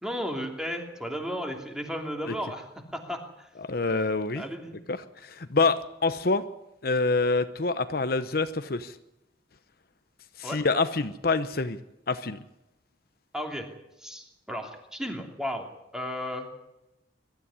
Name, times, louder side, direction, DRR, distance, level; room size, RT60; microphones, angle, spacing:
voice 1, 0.0-2.7 2.9-3.5 4.3-4.8 10.4-10.6 13.3-13.7 14.0-16.5, equal, 5° right, 3 dB, 3.0 m, -34 dB
voice 2, 3.6-4.4 4.9-6.4 6.8-8.9 10.4-11.8 12.1-12.4, left 3 dB, 55° left, 11 dB, 0.9 m, -26 dB
23.0 x 13.0 x 9.7 m, 0.91 s
head